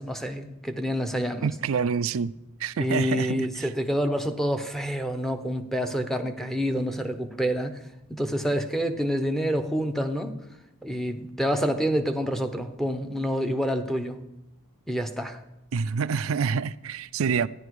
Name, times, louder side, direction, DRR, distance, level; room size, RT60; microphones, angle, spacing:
voice 1, 0.0-1.5 2.8-7.8 8.1-10.3 10.8-14.2 14.9-15.4, equal, ahead, 0.8 m, -27 dB
voice 2, 1.4-2.3 2.6-3.5 15.7-17.5, right 6 dB, 70° right, 0.4 m, -27 dB
13.5 x 10.0 x 4.8 m
head